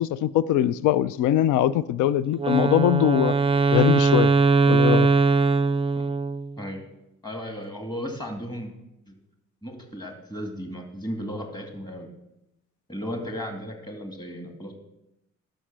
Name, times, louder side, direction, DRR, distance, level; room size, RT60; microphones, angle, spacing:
voice 1, 0.0-3.4 3.7-4.3 4.7-5.1, left 12 dB, 80° left, 18 dB, 0.5 m, -22 dB
Wind instrument woodwind instrument, 2.4-6.6, right 4 dB, 20° right, 0.5 m, -20 dB
voice 2, 7.2-8.7 9.1-9.2 9.6-12.1 12.9-14.8, equal, 15° left, 3 dB, 2.4 m, -35 dB
11.5 x 6.4 x 7.4 m, 0.87 s
cardioid pair, 90°, 30 cm